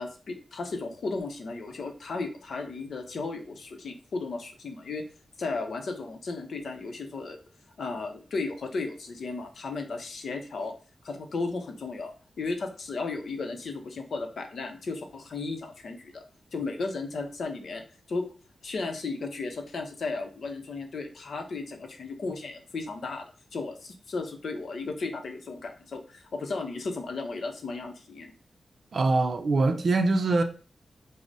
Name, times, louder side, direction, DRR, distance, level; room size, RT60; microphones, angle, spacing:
voice 1, 0.0-5.0 5.4-7.4 7.8-10.7 11.0-16.2 16.5-17.8 18.1-18.3 18.6-28.3, left 3 dB, 65° left, 0.7 m, -35 dB
voice 2, 28.9-30.4, right 3 dB, 50° right, 0.5 m, -23 dB
4.7 x 2.1 x 3.9 m
wide cardioid pair, 170°, 0 cm